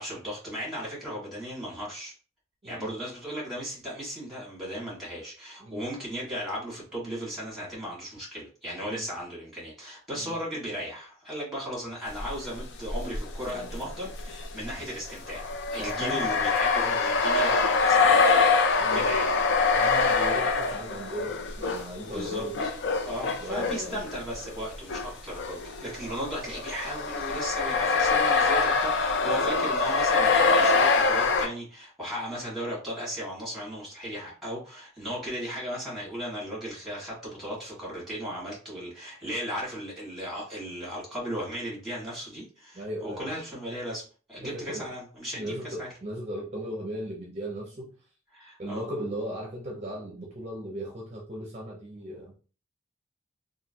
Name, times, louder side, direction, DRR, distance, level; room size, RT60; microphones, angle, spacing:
voice 1, 0.0-2.1 2.6-18.5 18.9-19.3 22.0-22.7 23.0-44.0 44.3-45.9 48.3-48.8, equal, ahead, 1.5 m, -36 dB
sound 1, 12.2-12.5 12.9-25.1 25.4-31.5, left 4 dB, 60° left, 0.4 m, -25 dB
voice 2, 15.8-16.3 18.8-19.1 19.7-22.6 23.4-24.1 42.7-43.3 44.4-44.9 45.3-47.9 48.6-52.3, right 1 dB, 30° right, 0.6 m, -37 dB
2.9 x 2.5 x 2.7 m
head